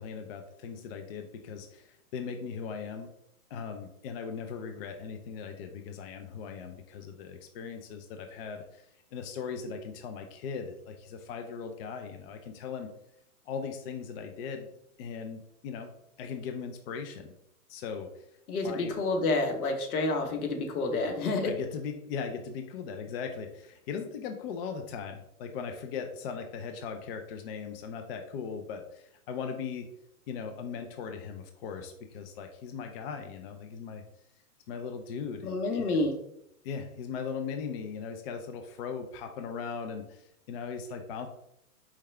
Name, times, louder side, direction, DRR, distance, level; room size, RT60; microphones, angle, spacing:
voice 1, 0.0-3.1 3.5-12.9 13.5-14.7 15.0-15.9 16.2-17.3 17.7-18.3 18.6-18.9 21.4-29.9 30.3-34.0 34.7-35.9 36.6-41.3, left 6 dB, 40° left, 5 dB, 0.5 m, -39 dB
voice 2, 18.5-21.5 35.4-36.2, left 3 dB, 75° left, 5 dB, 1.1 m, -29 dB
4.8 x 3.4 x 3.2 m, 0.76 s
hypercardioid pair, 135°, 44 cm